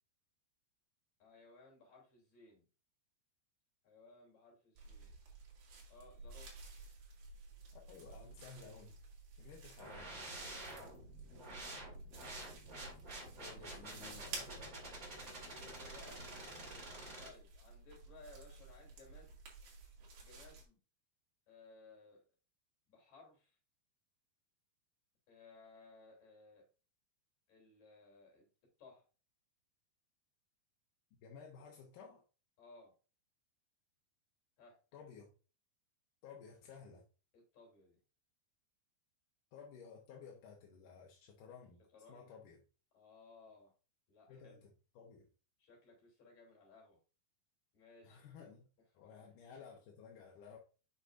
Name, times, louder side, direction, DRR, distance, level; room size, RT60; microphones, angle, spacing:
voice 1, 1.2-2.7 3.8-5.1 5.9-6.6 10.5-10.9 13.6-14.9 15.4-16.2 17.2-19.4 20.2-20.8 21.5-22.2 22.9-23.6 25.3-26.7 27.5-28.5 28.8-29.1 32.6-32.9 34.6-34.8 37.3-38.0 41.9-42.3 42.9-43.7 44.1-44.6 45.6-47.0 47.7-48.2 49.0-49.3, left 3 dB, 45° left, -2 dB, 4.5 m, -60 dB
sound 1, 4.8-20.6, right 4 dB, 65° right, 3.9 m, -53 dB
voice 2, 7.7-9.0 9.4-10.3 13.4-14.8 31.2-32.2 34.9-35.3 36.2-37.0 39.5-41.8 42.1-42.6 44.3-45.3 48.0-48.7 48.9-50.6, left 6 dB, 65° left, 0 dB, 2.2 m, -55 dB
sound 2, 9.8-17.3, right 1 dB, 30° right, 1.8 m, -49 dB
8.2 x 6.0 x 2.6 m, 0.35 s
omnidirectional pair, 4.6 m